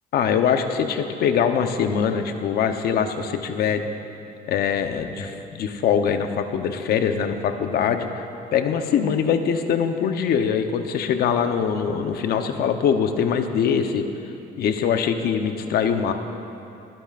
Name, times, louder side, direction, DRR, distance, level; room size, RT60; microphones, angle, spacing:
voice 1, 0.1-3.9 4.5-8.3 8.5-14.0 14.6-16.1, left 7 dB, 65° left, 7 dB, 0.9 m, -23 dB
29.5 x 11.0 x 2.5 m, 2.8 s
cardioid pair, 110°, 17 cm